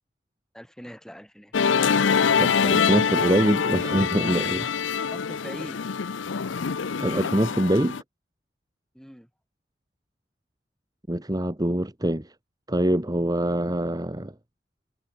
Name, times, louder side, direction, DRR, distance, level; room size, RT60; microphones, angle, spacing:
voice 1, 0.5-1.5 5.1-5.8 8.9-9.3, equal, 5° left, 7.4 m, -41 dB
Musical instrument, 1.5-8.0, left 6 dB, 80° left, 0.6 m, -24 dB
voice 2, 2.4-4.7 7.0-8.0 11.1-12.3 12.7-14.3, right 1 dB, 20° right, 1.9 m, -24 dB
head